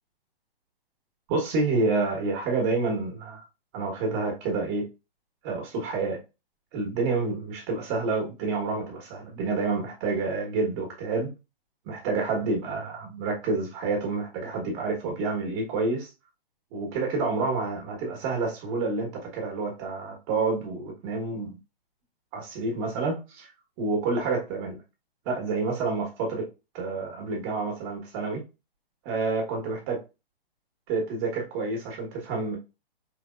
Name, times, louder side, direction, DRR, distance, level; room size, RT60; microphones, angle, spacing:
voice 1, 1.3-3.4 3.7-4.8 5.4-6.2 6.7-11.3 11.8-16.1 16.7-21.6 22.3-23.5 23.8-24.8 25.2-26.4 26.7-28.4 29.0-30.0 30.9-32.6, right 3 dB, 30° right, 1.3 m, -28 dB
4.4 x 3.5 x 2.4 m
figure-of-eight pair, 120°, 30 cm